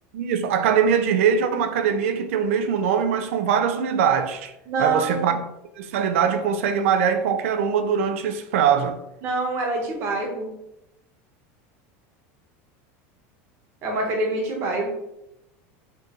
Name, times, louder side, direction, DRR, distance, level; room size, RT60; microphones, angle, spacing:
voice 1, 0.1-4.5 4.8-5.4 5.8-9.0, right 7 dB, 85° right, 0.5 m, -22 dB
voice 2, 4.7-5.3 9.2-10.5 13.8-14.9, right 3 dB, 40° right, 1.0 m, -26 dB
4.4 x 2.6 x 3.1 m
supercardioid pair, 165°, 7 cm